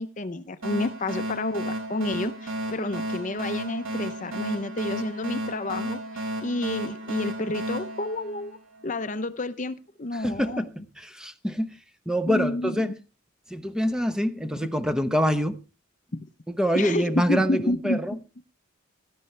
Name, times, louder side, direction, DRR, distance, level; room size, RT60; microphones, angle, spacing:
voice 1, 0.0-8.6 8.8-10.7 12.3-12.9 16.1-16.3 16.7-18.0, left 2 dB, 35° left, 0.7 m, -30 dB
sound 1, 0.6-9.0, right 1 dB, 85° right, 5.3 m, -33 dB
voice 2, 10.1-10.7 11.0-11.8 12.1-12.9 13.5-15.6 16.5-18.1, equal, 5° right, 0.9 m, -25 dB
16.5 x 13.0 x 3.3 m
head